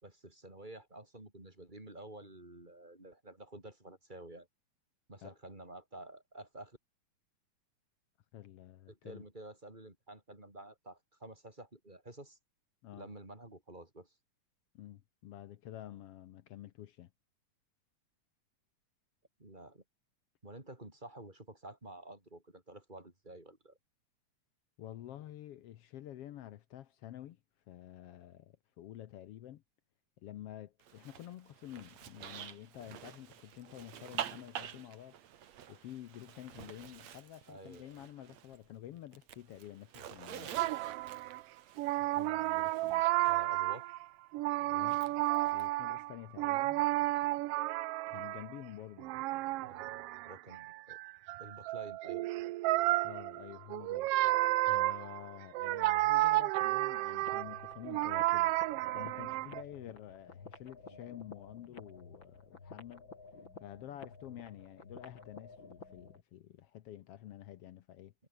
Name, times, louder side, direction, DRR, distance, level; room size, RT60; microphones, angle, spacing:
voice 1, 0.0-4.5 5.1-6.8 8.9-12.4 12.9-14.1 19.4-19.8 20.4-23.8 37.5-38.0 43.2-43.9 49.6-51.0 51.4-52.5 60.8-61.0, right 1 dB, 15° right, 4.5 m, -51 dB
voice 2, 8.3-9.3 12.8-13.1 14.8-17.1 24.8-27.4 27.7-29.6 30.2-35.2 35.7-40.7 42.0-43.1 44.6-45.1 45.5-46.8 48.1-49.1 53.0-54.1 54.7-58.6 58.9-63.1 63.6-68.1, left 12 dB, 65° left, 1.6 m, -49 dB
Zipper (clothing), 30.8-38.7 39.0-43.4 44.8-45.6, right 10 dB, 65° right, 2.8 m, -47 dB
sound 1, 40.6-41.4 41.8-44.1 44.3-48.6 49.0-59.6, right 17 dB, 90° right, 1.3 m, -32 dB
sound 2, 57.2-66.2, left 4 dB, 40° left, 5.0 m, -53 dB
omnidirectional pair, 3.4 m